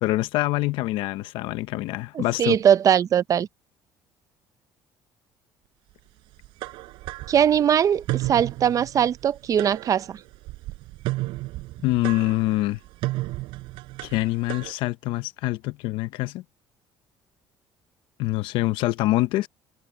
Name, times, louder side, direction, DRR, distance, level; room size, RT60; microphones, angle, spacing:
voice 1, 0.0-2.6 11.8-12.8 14.0-16.4 18.2-19.5, left 17 dB, 80° left, 0.9 m, -25 dB
voice 2, 2.1-3.5 7.3-10.2, right 9 dB, 40° right, 0.6 m, -21 dB
sound 1, 6.4-14.7, right 19 dB, 80° right, 4.4 m, -33 dB
cardioid pair, 115°, 9 cm